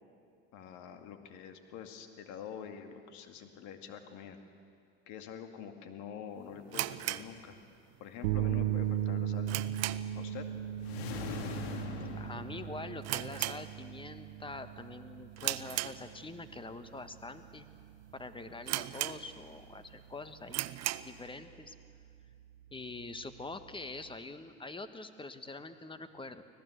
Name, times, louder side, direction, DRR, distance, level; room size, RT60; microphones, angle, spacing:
voice 1, 0.5-4.4 5.1-7.5 8.0-9.5 10.2-10.5, left 8 dB, 65° left, 6 dB, 2.3 m, -46 dB
sound 1, 6.7-8.1 8.3-8.4 8.9-10.3 10.6-10.9 11.2-11.3 11.9-12.2 12.5-12.6 13.0-14.2 14.5-14.8 15.4-16.5 17.1-17.2 17.8-17.9 18.1-18.2 18.7-19.6 20.0-20.1 20.5-21.2, right 15 dB, 55° right, 0.8 m, -37 dB
sound 2, 8.2-24.2, right 12 dB, 80° right, 0.8 m, -39 dB
sound 3, 10.8-13.4, left 6 dB, 85° left, 2.2 m, -41 dB
voice 2, 12.2-17.7 18.1-20.6 21.0-21.7 22.7-26.4, left 3 dB, 15° left, 10 dB, 1.5 m, -45 dB
25.0 x 17.0 x 8.1 m, 2.3 s
hypercardioid pair, 80°, 31 cm